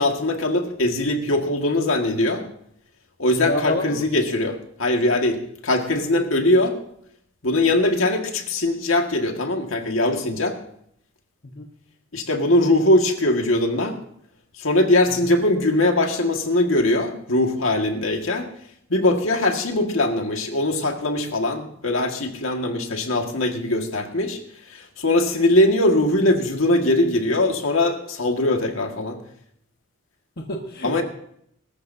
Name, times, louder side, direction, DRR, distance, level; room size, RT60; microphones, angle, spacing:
voice 1, 0.0-2.4 3.2-6.8 7.4-10.6 12.1-14.0 14.5-18.5 18.9-24.4 24.7-29.2 30.8-31.0, left 1 dB, 70° left, 3 dB, 1.8 m, -21 dB
voice 2, 3.3-4.1 11.4-11.7 15.1-15.2 30.4-31.0, left 1 dB, 50° left, 2 dB, 1.3 m, -28 dB
23.0 x 13.5 x 2.7 m, 0.68 s
head